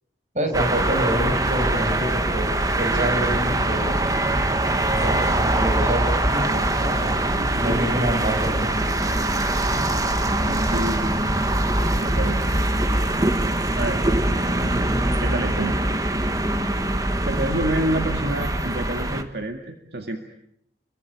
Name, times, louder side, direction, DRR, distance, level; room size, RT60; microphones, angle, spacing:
voice 1, 0.3-4.0 4.9-7.2 7.6-9.0, right 1 dB, 40° right, 5 dB, 6.3 m, -27 dB
sound 1, 0.5-19.2, right 1 dB, 20° right, 1.6 m, -23 dB
voice 2, 7.4-8.0 10.4-11.2 12.0-12.5 13.8-14.2 14.6-15.8 17.2-20.2, right 1 dB, 65° right, 5 dB, 2.0 m, -28 dB
29.5 x 23.0 x 8.5 m, 0.74 s
head